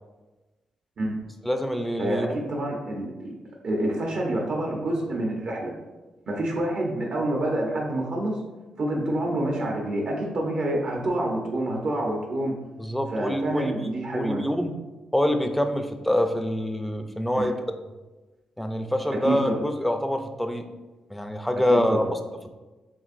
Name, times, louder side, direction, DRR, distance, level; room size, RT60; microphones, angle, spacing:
voice 1, 1.4-2.3 12.8-13.7 14.1-14.7 15.1-17.6 18.6-20.7 21.1-22.0, left 1 dB, 5° left, 6 dB, 0.4 m, -25 dB
voice 2, 2.0-3.3 3.6-5.7 6.3-8.3 8.8-12.5 13.1-14.4 17.4-17.5 19.2-19.5 21.7-22.1, right 1 dB, 55° right, 0 dB, 0.8 m, -27 dB
7.1 x 2.5 x 2.5 m, 1.2 s
cardioid pair, 100°, 2 cm